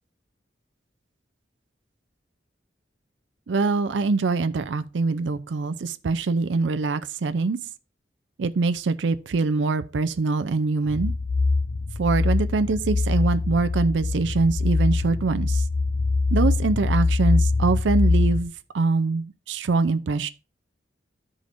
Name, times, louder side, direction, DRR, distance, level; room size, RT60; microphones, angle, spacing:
voice 1, 3.5-7.6 8.4-11.1 12.0-15.6 16.3-20.3, right 3 dB, 80° right, 0.5 m, -24 dB
sound 1, 10.9-18.4, left 3 dB, 80° left, 0.8 m, -23 dB
12.5 x 5.0 x 2.5 m
head